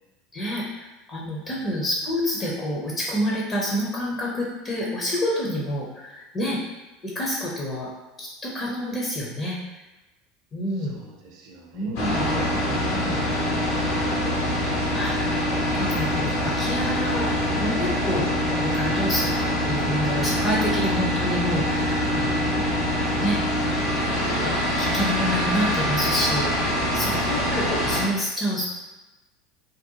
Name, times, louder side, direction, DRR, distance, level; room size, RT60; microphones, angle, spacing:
voice 1, 0.3-0.6 1.1-6.6 7.0-7.9 8.2-9.6 10.5-11.0 11.7-12.2 14.9-17.3 17.6-18.3 18.6-22.8 23.2-23.4 24.2-28.7, equal, 30° left, -4 dB, 0.6 m, -28 dB
voice 2, 10.8-14.6 26.9-27.4, right 3 dB, 55° right, 0 dB, 0.5 m, -39 dB
sound 1, 12.0-28.0, left 1 dB, 65° left, 0.7 m, -24 dB
2.5 x 2.2 x 2.8 m, 1.1 s
figure-of-eight pair, 75°, 0 cm